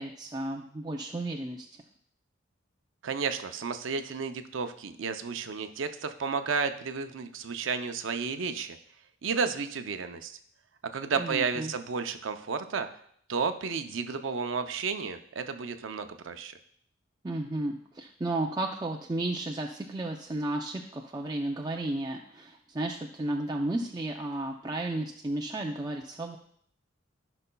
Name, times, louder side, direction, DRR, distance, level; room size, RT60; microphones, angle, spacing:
voice 1, 0.0-1.7 11.2-11.7 17.2-26.4, right 2 dB, 20° right, 1 dB, 0.4 m, -33 dB
voice 2, 3.0-8.8 9.2-10.4 10.9-12.9 13.3-16.5, right 5 dB, 75° right, 8 dB, 0.6 m, -32 dB
15.0 x 5.5 x 2.3 m, 0.64 s
head